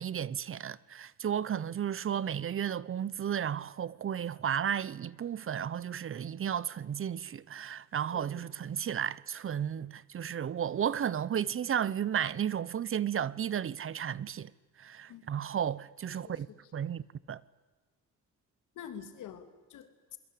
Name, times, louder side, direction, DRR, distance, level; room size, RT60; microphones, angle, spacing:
voice 1, 0.0-14.5 14.8-16.5 16.7-17.0 17.3-17.4, right 9 dB, 45° right, 0.9 m, -33 dB
voice 2, 8.1-8.5 15.1-15.4 16.2-16.3 18.7-20.2, left 8 dB, 80° left, 3.0 m, -47 dB
29.0 x 22.5 x 8.5 m
cardioid pair, 90°, 30 cm